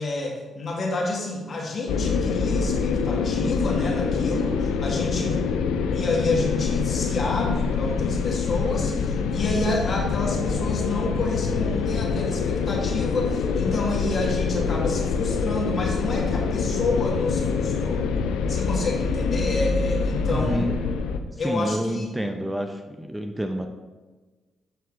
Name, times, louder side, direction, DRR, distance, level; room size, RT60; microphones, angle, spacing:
voice 1, 0.0-5.4 5.9-18.1 18.5-20.6 21.4-22.1, left 2 dB, 50° left, -2 dB, 2.0 m, -29 dB
sound 1, 1.9-21.2, left 5 dB, 80° left, 0.4 m, -25 dB
voice 2, 20.3-20.8 21.4-23.7, equal, 10° right, 5 dB, 0.7 m, -28 dB
8.2 x 4.5 x 3.7 m, 1.3 s
supercardioid pair, 50°, 0 cm